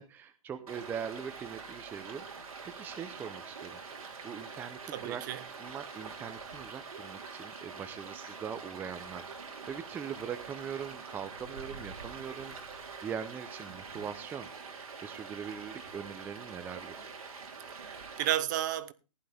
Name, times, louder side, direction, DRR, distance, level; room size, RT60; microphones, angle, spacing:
voice 1, 0.0-3.8 4.2-5.2 5.6-9.2 9.7-14.5 15.0-17.1, right 7 dB, 10° right, 0.7 m, -41 dB
Stream, 0.7-18.3, right 5 dB, 85° right, 3.5 m, -45 dB
voice 2, 4.9-5.4 17.8-18.9, right 12 dB, 35° right, 0.9 m, -32 dB
15.5 x 11.0 x 3.5 m
hypercardioid pair, 155°, 18 cm